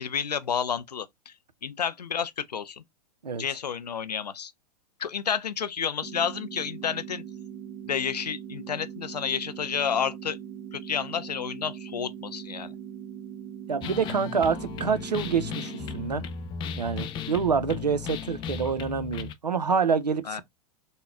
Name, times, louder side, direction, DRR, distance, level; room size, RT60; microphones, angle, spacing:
voice 1, 0.0-1.3 1.6-2.8 3.4-4.5 5.0-7.2 7.9-10.4 10.7-12.7 20.3-20.4, left 7 dB, 85° left, 0.5 m, -30 dB
sound 1, 6.0-16.0, right 9 dB, 55° right, 1.3 m, -41 dB
voice 2, 13.7-16.2 16.8-20.4, right 6 dB, 90° right, 0.6 m, -27 dB
sound 2, 13.8-19.3, left 7 dB, 25° left, 0.4 m, -36 dB
3.6 x 2.2 x 3.2 m
figure-of-eight pair, 105°, 20 cm